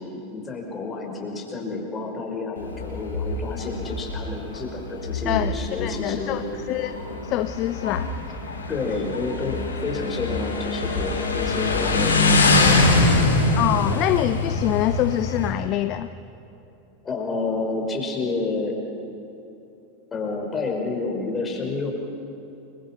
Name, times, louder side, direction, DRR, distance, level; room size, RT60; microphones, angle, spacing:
voice 1, 0.0-6.6 8.7-13.2 17.0-18.8 20.1-21.9, left 3 dB, 20° left, 1 dB, 5.5 m, -29 dB
Motorcycle, 2.6-15.5, left 2 dB, 75° left, 3.7 m, -24 dB
voice 2, 5.3-6.4 6.7-7.0 7.2-8.1 13.6-16.1, left 14 dB, 40° left, 12 dB, 0.7 m, -25 dB
29.5 x 22.5 x 6.0 m, 2.8 s
figure-of-eight pair, 85°, 0 cm